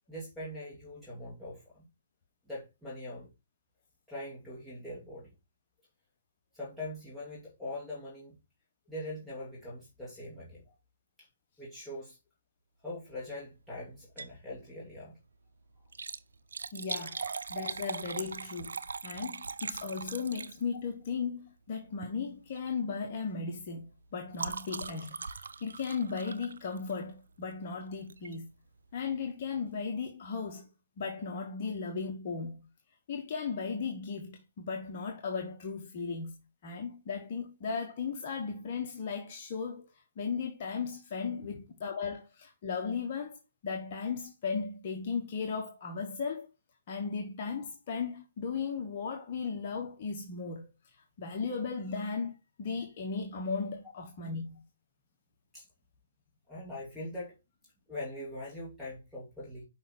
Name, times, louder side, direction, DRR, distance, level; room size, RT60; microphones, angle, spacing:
voice 1, 0.1-1.8 2.5-3.3 4.1-5.3 6.5-8.4 8.9-10.6 11.2-11.3 11.6-12.2 12.8-15.1 17.1-17.3 41.4-41.6 55.5-55.7 56.5-57.3 57.9-59.6, left 1 dB, ahead, 2.7 m, -42 dB
Liquid, 14.0-14.4 14.8-14.9 15.8-20.9 21.9-22.2 22.5-22.8 23.1-27.2 28.1-28.4 28.9-29.0 29.2-29.3, right 5 dB, 80° right, 0.6 m, -40 dB
voice 2, 16.7-17.2 17.5-18.7 19.0-23.8 24.1-25.2 25.6-28.5 28.9-30.6 31.0-32.7 33.1-36.3 36.6-39.9 40.2-46.5 46.9-50.6 51.2-52.3 52.6-54.6, left 5 dB, 40° left, 1.2 m, -36 dB
5.7 x 5.3 x 4.4 m
hypercardioid pair, 145°, 0 cm